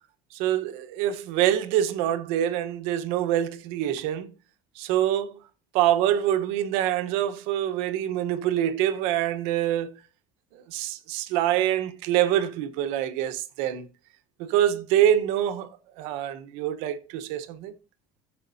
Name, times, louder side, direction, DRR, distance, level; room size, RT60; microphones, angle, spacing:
voice 1, 0.3-4.3 4.8-5.4 5.7-9.9 10.7-13.9 14.4-15.7 16.0-17.7, right 11 dB, 80° right, 1.1 m, -25 dB
15.5 x 7.4 x 2.8 m
cardioid pair, 170°, 10 cm